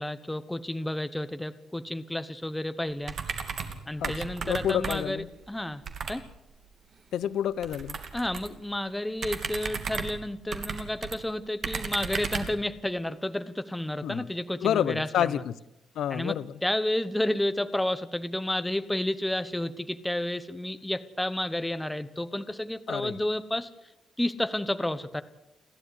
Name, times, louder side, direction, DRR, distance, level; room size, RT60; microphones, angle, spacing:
voice 1, 0.0-3.1 3.9-5.8 6.1-6.2 8.1-15.4 16.1-16.3 16.6-23.7 24.2-25.2, left 1 dB, 5° left, 11 dB, 1.0 m, -31 dB
sound 1, 3.0-3.8 4.0-5.2 5.9-6.2 7.6-8.6 9.2-11.2 11.6-12.6, right 6 dB, 40° right, 2.6 m, -34 dB
voice 2, 4.5-5.3 7.1-8.0 14.0-14.2 14.6-15.5 16.0-16.5 22.9-23.2, left 10 dB, 70° left, 17 dB, 0.7 m, -28 dB
30.0 x 12.0 x 9.9 m, 0.93 s
cardioid pair, 175°, 0 cm